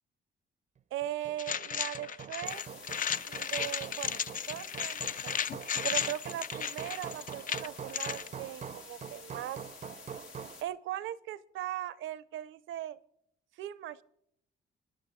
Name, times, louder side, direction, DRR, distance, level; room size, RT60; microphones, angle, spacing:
voice 1, 0.9-2.6 3.3-4.2 4.5-5.3 5.8-9.6 10.6-13.0 13.6-14.0, right 13 dB, 80° right, 18 dB, 0.6 m, -39 dB
Hammer, 1.0-10.7, right 7 dB, 35° right, 0.5 m, -45 dB
sound 1, 1.4-8.3, left 8 dB, 45° left, 0.5 m, -35 dB
sound 2, 2.4-10.6, left 5 dB, 85° left, 1.8 m, -51 dB
29.5 x 10.5 x 3.7 m, 0.77 s
cardioid pair, 90°, 20 cm